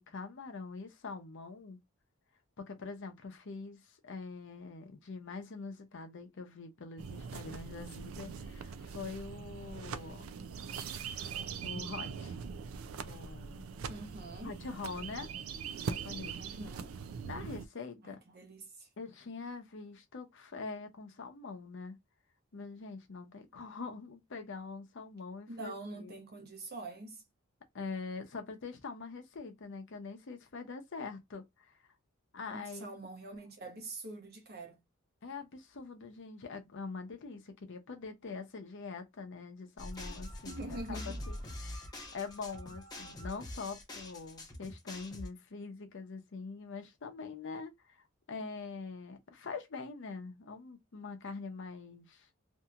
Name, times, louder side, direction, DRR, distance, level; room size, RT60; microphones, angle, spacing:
voice 1, 0.0-1.8 2.6-10.2 11.6-12.4 13.0-13.6 14.4-15.3 15.8-16.6 17.2-18.2 19.0-22.0 22.5-26.1 27.7-31.9 32.3-32.9 35.2-52.3, left 4 dB, 60° left, 0.7 m, -44 dB
sound 1, 7.0-17.7, right 6 dB, 75° right, 0.4 m, -42 dB
voice 2, 13.9-14.6 16.3-17.0 18.0-18.9 25.5-27.2 32.5-34.8 40.5-41.2, right 2 dB, 50° right, 0.9 m, -45 dB
sound 2, 39.8-45.3, left 1 dB, 20° left, 0.8 m, -44 dB
2.8 x 2.6 x 2.3 m
head